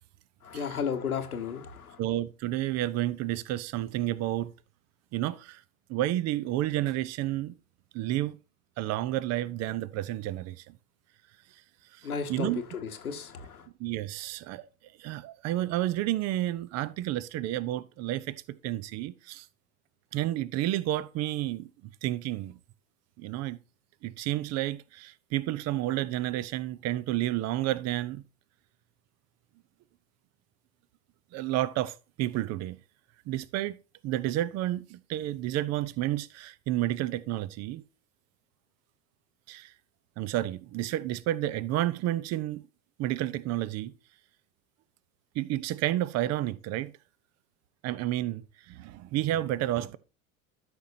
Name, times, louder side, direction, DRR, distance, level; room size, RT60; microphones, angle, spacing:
voice 1, 0.4-2.0 12.0-13.7, left 6 dB, 85° left, 1.2 m, -34 dB
voice 2, 2.0-4.5 5.1-5.6 5.9-7.5 7.9-8.4 8.8-10.6 12.3-12.6 13.8-14.6 15.0-18.3 18.6-19.5 20.1-21.7 22.0-22.5 23.2-23.6 24.0-28.2 31.3-32.8 33.3-33.8 34.0-37.8 39.5-39.7 40.2-42.6 43.0-43.9 45.3-46.9 47.8-50.0, right 14 dB, 35° right, 0.7 m, -30 dB
13.0 x 6.2 x 2.7 m
figure-of-eight pair, 75°, 43 cm